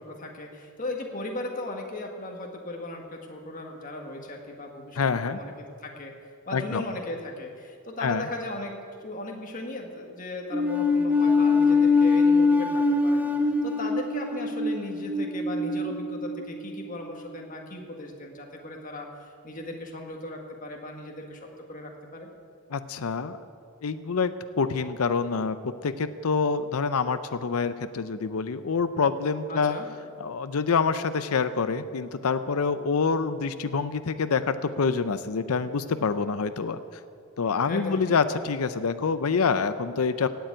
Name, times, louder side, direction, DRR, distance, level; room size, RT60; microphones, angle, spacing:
voice 1, 0.0-5.5 5.8-6.1 6.5-8.7 9.0-13.3 13.6-19.1 19.4-21.4 21.7-22.3 29.5-29.9 37.7-38.0, left 1 dB, 40° left, 1 dB, 1.6 m, -37 dB
voice 2, 5.0-5.4 6.5-6.8 8.0-8.2 22.7-23.4 23.8-29.8 30.2-36.8 37.4-40.3, left 5 dB, 80° left, 12 dB, 0.6 m, -26 dB
sound 1, 10.5-16.9, left 3 dB, 10° right, 0.7 m, -23 dB
17.0 x 7.1 x 8.9 m, 2.3 s
head